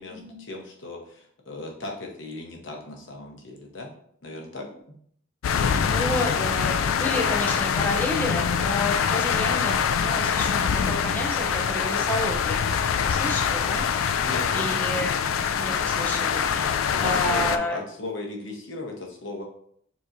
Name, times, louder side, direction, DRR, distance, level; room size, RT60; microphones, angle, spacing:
voice 1, 0.0-3.9 4.2-4.6 14.2-14.8 17.0-19.4, left 2 dB, 65° left, 0 dB, 1.0 m, -37 dB
sound 1, 5.4-17.6, left 7 dB, 85° left, 0.3 m, -24 dB
voice 2, 5.5-14.3 14.5-15.1 15.5-17.8, left 1 dB, 10° left, -2 dB, 0.6 m, -31 dB
6.8 x 3.0 x 2.6 m, 0.65 s
head